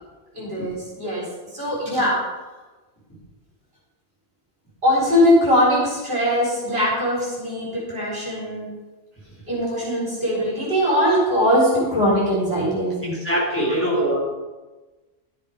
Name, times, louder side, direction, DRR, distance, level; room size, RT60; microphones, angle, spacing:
voice 1, 0.3-1.2 1.5-2.2 4.8-8.7 9.5-13.1 13.7-13.8, equal, 55° right, -6 dB, 4.3 m, -21 dB
voice 2, 13.2-14.2, right 1 dB, 10° left, -6 dB, 4.2 m, -22 dB
12.5 x 7.7 x 4.9 m, 1.2 s
omnidirectional pair, 1.2 m